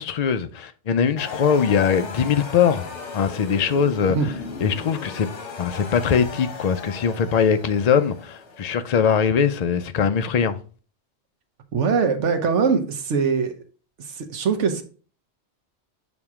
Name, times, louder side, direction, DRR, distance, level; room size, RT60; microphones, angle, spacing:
voice 1, 0.0-4.2 4.6-5.3 5.6-10.6, left 7 dB, 55° left, 0.4 m, -21 dB
sound 1, 1.2-9.3, left 4 dB, 80° left, 1.3 m, -37 dB
voice 2, 11.7-13.5 14.0-14.8, right 5 dB, 90° right, 1.2 m, -22 dB
7.2 x 2.9 x 4.7 m
omnidirectional pair, 1.2 m